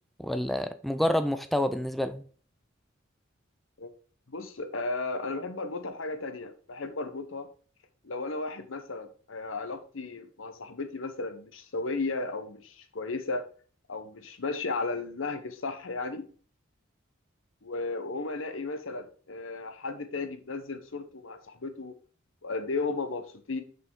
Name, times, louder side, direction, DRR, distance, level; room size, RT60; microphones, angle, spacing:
voice 1, 0.2-2.2, left 1 dB, ahead, 0.3 m, -28 dB
voice 2, 4.3-7.5 8.0-13.4 13.9-16.2 17.6-21.9 22.4-23.6, left 3 dB, 75° left, 1.0 m, -34 dB
6.1 x 5.4 x 4.7 m
head